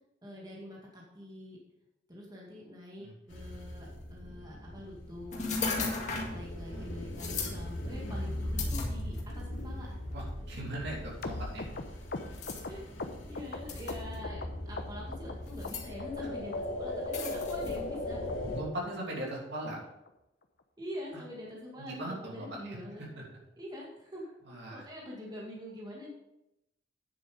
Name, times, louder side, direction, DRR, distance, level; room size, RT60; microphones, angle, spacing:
voice 1, 0.2-1.6 2.1-5.5 6.1-10.0 12.7-18.3 19.6-19.7 20.8-23.1 23.6-24.3 24.7-26.1, left 1 dB, 20° right, -3 dB, 2.1 m, -45 dB
sound 1, 3.3-18.6, left 1 dB, 90° left, 2.6 m, -39 dB
sound 2, 5.3-6.4 7.2-7.6 8.6-9.4 10.2-10.3 12.3-12.6 13.7-14.2 15.5-15.9 17.1-17.8, left 4 dB, 40° left, 2.1 m, -35 dB
voice 2, 6.0-6.3 6.7-6.9 10.1-11.7 18.6-19.8 21.8-23.2 24.5-24.8, right 1 dB, 65° right, -3 dB, 3.0 m, -40 dB
sound 3, 11.2-14.5 14.8-15.3 15.6-16.2 16.5-16.6 16.9-17.1 17.4-17.5 17.8-18.0 18.3-18.4 18.6-18.9 19.2-19.3 19.5-19.7 20.1-20.2 20.4-20.6 20.9-21.0, left 3 dB, 55° left, 0.9 m, -40 dB
9.5 x 7.6 x 5.0 m, 0.88 s
head